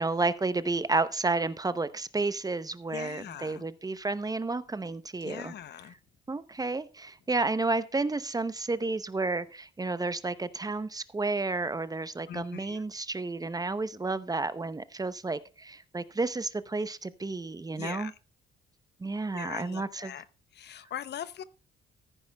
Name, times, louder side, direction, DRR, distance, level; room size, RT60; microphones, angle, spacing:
voice 1, 0.0-5.5 6.3-18.1 19.0-20.1, right 3 dB, 20° right, 0.7 m, -31 dB
voice 2, 2.9-3.7 5.2-6.0 12.3-12.8 17.8-18.2 19.3-20.3 20.5-21.4, left 10 dB, 60° left, 0.7 m, -41 dB
14.5 x 9.5 x 2.3 m
cardioid pair, 90°, 20 cm